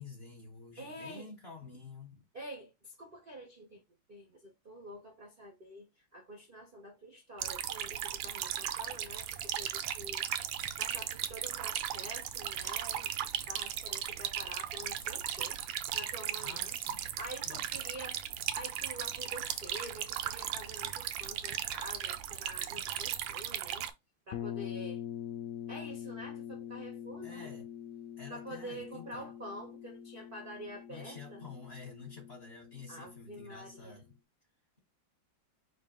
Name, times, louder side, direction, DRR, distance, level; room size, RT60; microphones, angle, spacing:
voice 1, 0.0-2.2 16.4-17.1 17.4-17.7 27.2-27.7 28.2-29.3 30.9-34.1, left 4 dB, 40° left, 1.1 m, -49 dB
voice 2, 0.8-1.3 2.3-3.8 4.1-10.4 10.8-15.6 15.9-16.8 17.2-18.2 18.5-23.9 24.3-25.0 25.7-27.5 28.3-31.4 32.9-34.0, right 1 dB, 45° right, 0.7 m, -47 dB
sound 1, 7.4-23.9, right 10 dB, 80° right, 1.3 m, -37 dB
sound 2, 24.3-34.0, left 10 dB, 85° left, 0.7 m, -44 dB
5.1 x 2.5 x 3.6 m
omnidirectional pair, 2.1 m